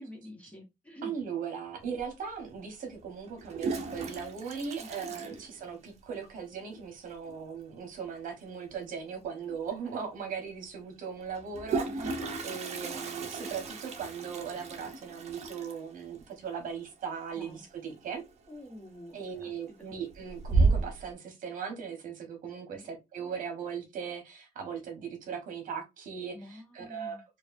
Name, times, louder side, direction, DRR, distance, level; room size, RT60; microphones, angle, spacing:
voice 1, 0.0-1.1 4.8-5.4 9.8-9.9 12.0-12.3 17.3-17.6 18.5-19.5 22.7-22.8 26.3-27.2, left 1 dB, 10° left, 1.3 m, -47 dB
voice 2, 1.0-12.1 12.4-18.2 19.1-27.2, right 6 dB, 65° right, 1.3 m, -38 dB
Toilet flush, 2.0-2.1 3.3-6.1 6.4-6.5 6.7-6.8 7.1-7.5 9.2-9.3 9.7-9.8 11.3-18.0 18.3-18.7 19.2-19.7 20.1-21.1, right 3 dB, 50° right, 0.9 m, -33 dB
4.6 x 2.5 x 2.6 m
cardioid pair, 170°, 15 cm